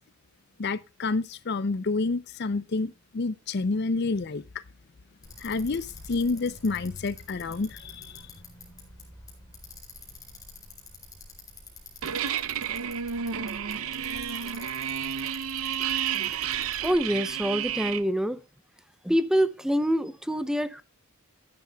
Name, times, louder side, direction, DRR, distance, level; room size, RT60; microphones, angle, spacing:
voice 1, 0.6-4.4 5.4-8.2, left 3 dB, 45° left, 0.5 m, -29 dB
Bicycle, 5.2-17.0, left 3 dB, 15° left, 4.3 m, -48 dB
sound 1, 12.0-18.0, right 8 dB, 75° right, 0.6 m, -31 dB
voice 2, 16.8-18.4 19.0-20.8, equal, 5° right, 0.5 m, -25 dB
15.0 x 10.5 x 2.3 m
head